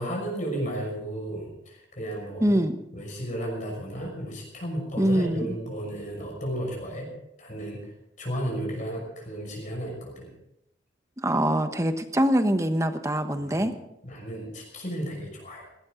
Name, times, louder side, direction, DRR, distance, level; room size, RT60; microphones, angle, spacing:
voice 1, 0.0-2.6 2.9-7.1 7.4-10.3 13.4-13.7 14.0-15.7, right 1 dB, 40° left, -1 dB, 6.0 m, -34 dB
voice 2, 2.4-2.7 5.0-5.6 11.2-13.7, right 1 dB, 15° right, 8 dB, 1.2 m, -24 dB
18.5 x 17.5 x 3.9 m, 0.81 s
head